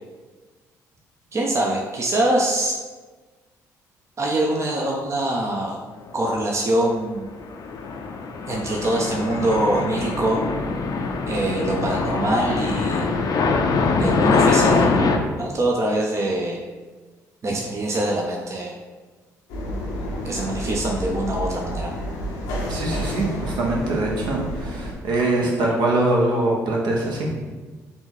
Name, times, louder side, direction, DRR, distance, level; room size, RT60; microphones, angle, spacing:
voice 1, 1.3-2.7 4.2-5.8 6.1-7.3 8.5-10.4 11.3-13.1 14.0-15.1 15.4-16.6 17.4-18.7 20.2-21.9, right 1 dB, 40° right, -1 dB, 0.5 m, -24 dB
sound 1, 7.3-15.2, left 4 dB, 55° left, 0.5 m, -23 dB
sound 2, 19.5-24.9, equal, 85° left, 0.7 m, -30 dB
voice 2, 22.7-27.3, right 2 dB, 70° right, -2 dB, 0.9 m, -23 dB
3.9 x 2.4 x 4.0 m, 1.3 s
hypercardioid pair, 55°, 8 cm